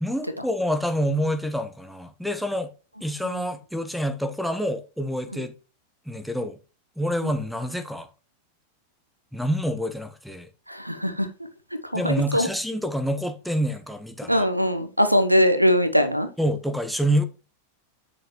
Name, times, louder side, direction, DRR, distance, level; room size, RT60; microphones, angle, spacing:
voice 1, 0.0-2.7 3.0-5.5 6.1-6.6 7.0-8.1 9.3-10.5 11.9-14.4 16.4-17.2, equal, ahead, 1.0 m, -27 dB
voice 2, 10.7-11.3 11.7-12.5 14.3-16.3, equal, 90° right, 0.9 m, -22 dB
8.7 x 6.3 x 3.1 m
figure-of-eight pair, 90°, 0 cm